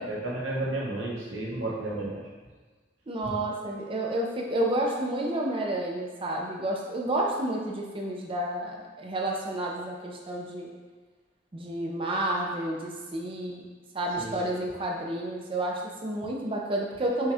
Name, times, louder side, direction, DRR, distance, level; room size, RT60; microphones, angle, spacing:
voice 1, 0.0-2.3 3.2-3.3 14.2-14.6, right 2 dB, 70° right, -4 dB, 1.1 m, -33 dB
voice 2, 3.1-10.7 11.5-13.7 13.9-17.3, right 1 dB, 25° right, -1 dB, 0.5 m, -30 dB
6.1 x 2.3 x 3.4 m, 1.4 s
head